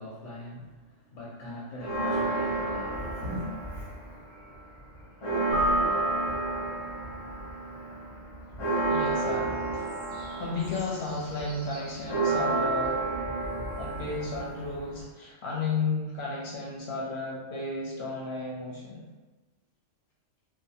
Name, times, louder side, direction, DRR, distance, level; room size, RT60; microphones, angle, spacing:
voice 1, 0.0-3.5, left 1 dB, 85° left, -5 dB, 1.0 m, -40 dB
Church bell, 1.8-4.2 4.5-4.6 5.0-15.0, right 3 dB, 30° left, 0.6 m, -31 dB
Keyboard (musical), 5.5-7.3, equal, 60° right, 0.8 m, -30 dB
voice 2, 8.9-9.8 10.4-13.1 13.8-19.1, left 3 dB, 65° left, -3 dB, 0.7 m, -33 dB
2.5 x 2.1 x 2.7 m, 1.2 s
omnidirectional pair, 1.4 m